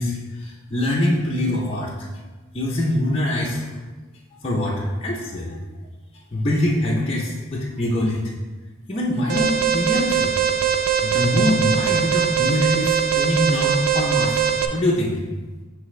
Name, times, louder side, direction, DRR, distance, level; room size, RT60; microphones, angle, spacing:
voice 1, 0.0-1.9 2.5-3.7 4.4-5.6 6.3-8.2 8.9-10.3 11.0-14.4 14.7-15.2, left 1 dB, 30° left, -5 dB, 0.6 m, -23 dB
Alarm, 9.3-14.7, right 8 dB, 50° right, 0.5 m, -21 dB
9.9 x 3.3 x 3.2 m, 1.3 s
head